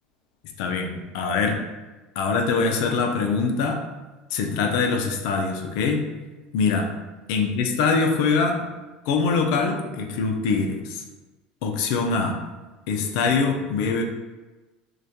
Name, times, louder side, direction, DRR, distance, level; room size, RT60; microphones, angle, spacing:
voice 1, 0.6-1.6 2.2-3.9 4.3-6.1 6.5-6.9 7.3-8.6 9.1-11.0 11.6-12.4 12.9-14.0, left 4 dB, 75° left, 3 dB, 0.3 m, -23 dB
2.3 x 2.1 x 2.7 m, 1.2 s
supercardioid pair, 90°, 4 cm